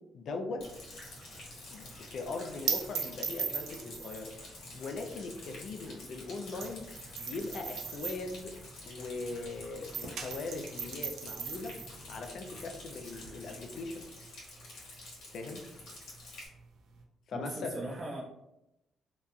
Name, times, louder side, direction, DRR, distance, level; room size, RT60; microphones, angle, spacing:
voice 1, 0.1-0.7 1.7-4.3 4.7-6.8 7.2-8.5 8.8-11.8 12.1-14.1 15.3-15.7 17.3-17.7, left 3 dB, 65° left, 4 dB, 0.4 m, -40 dB
Rain, 0.6-16.5, left 2 dB, 80° left, 1.2 m, -50 dB
sound 1, 0.6-14.1, equal, 25° left, 1.3 m, -55 dB
sound 2, 0.6-9.5 9.8-17.0, right 6 dB, 75° right, 0.4 m, -40 dB
voice 2, 17.3-18.2, right 1 dB, 35° right, -5 dB, 0.7 m, -39 dB
2.8 x 2.4 x 2.2 m, 0.88 s
cardioid pair, 90°, 0 cm